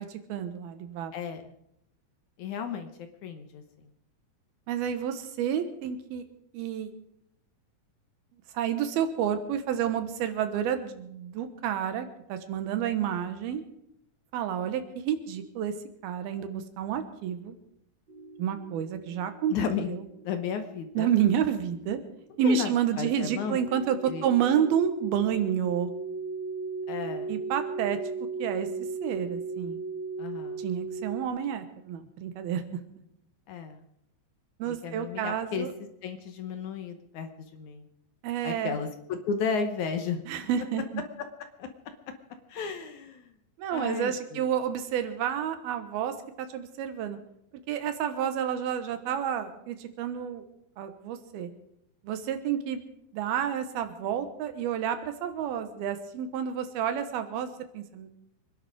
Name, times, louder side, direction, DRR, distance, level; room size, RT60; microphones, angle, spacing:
voice 1, 0.1-1.1 4.7-6.2 6.5-6.9 8.5-13.6 14.3-15.7 16.0-17.6 18.4-19.5 19.9-20.0 20.9-22.0 22.4-25.9 27.3-28.0 28.4-28.7 29.0-29.8 30.6-32.6 34.6-35.7 38.2-38.8 40.3-41.0 43.6-47.2 47.7-50.4 50.8-51.5 52.0-52.8 53.1-58.1, right 9 dB, 85° right, 9 dB, 3.1 m, -29 dB
voice 2, 1.1-1.5 2.4-2.9 3.2-3.6 19.5-20.0 20.2-21.1 22.4-22.7 23.0-23.6 24.0-24.3 26.9-27.3 30.2-30.6 33.5-33.8 34.7-35.7 36.0-37.9 38.4-40.2 41.6-41.7 42.5-43.3 43.7-44.5, left 6 dB, 65° left, 7 dB, 2.1 m, -33 dB
sound 1, 18.1-31.2, right 4 dB, 55° right, 1.3 m, -38 dB
25.0 x 11.0 x 4.9 m, 0.77 s
omnidirectional pair, 4.3 m